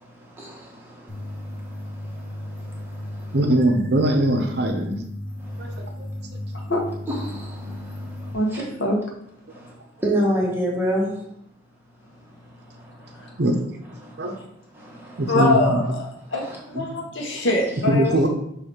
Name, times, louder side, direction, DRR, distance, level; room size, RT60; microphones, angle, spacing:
sound 1, 1.1-8.3, left 1 dB, 20° left, 1.1 m, -35 dB
voice 1, 3.3-5.0 5.6-6.1 13.4-13.6 14.2-14.4 15.2-15.9 16.7-17.0 17.9-18.3, right 1 dB, 55° right, 4 dB, 0.7 m, -21 dB
voice 2, 7.1-7.8 8.5-8.6 10.0-11.1 14.3-14.4 14.8-15.2 16.4-16.6, equal, 10° right, -3 dB, 1.3 m, -25 dB
voice 3, 8.3-9.0 15.3-16.0 16.3-18.3, left 2 dB, 70° left, -1 dB, 1.4 m, -23 dB
6.1 x 3.2 x 5.0 m, 0.74 s
head